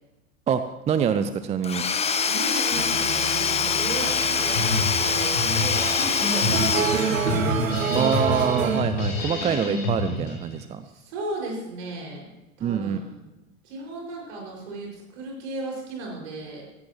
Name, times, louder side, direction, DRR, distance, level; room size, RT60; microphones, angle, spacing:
voice 1, 0.5-1.8 7.9-10.8 12.6-13.0, right 7 dB, 15° right, 11 dB, 0.5 m, -25 dB
Domestic sounds home sounds / Tools, 1.6-7.7, left 6 dB, 15° left, 0.9 m, -24 dB
voice 2, 2.3-7.6 9.1-9.5 10.8-12.3 12.6-13.3 13.6-16.6, right 2 dB, 55° right, -2 dB, 5.7 m, -35 dB
sound 1, 2.7-8.9, right 6 dB, 75° right, 1.2 m, -28 dB
Drum kit, 4.5-10.5, left 2 dB, 60° left, 4.3 m, -29 dB
16.5 x 16.0 x 3.1 m, 1.0 s
figure-of-eight pair, 80°, 41 cm